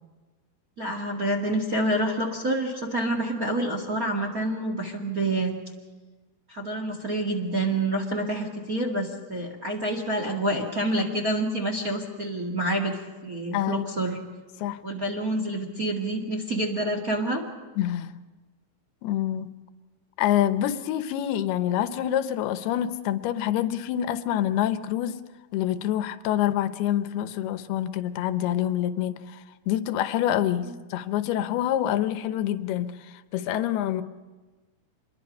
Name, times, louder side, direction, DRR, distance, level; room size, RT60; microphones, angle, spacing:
voice 1, 0.8-5.5 6.5-13.0 13.2-14.2 14.8-17.4 30.6-30.8, right 1 dB, 30° right, 1 dB, 1.7 m, -27 dB
voice 2, 13.5-13.9 14.6-14.9 17.8-18.2 19.0-19.6 20.2-25.2 25.5-34.0, left 11 dB, 85° left, 11 dB, 2.8 m, -26 dB
27.0 x 22.0 x 5.4 m, 1.3 s
omnidirectional pair, 4.5 m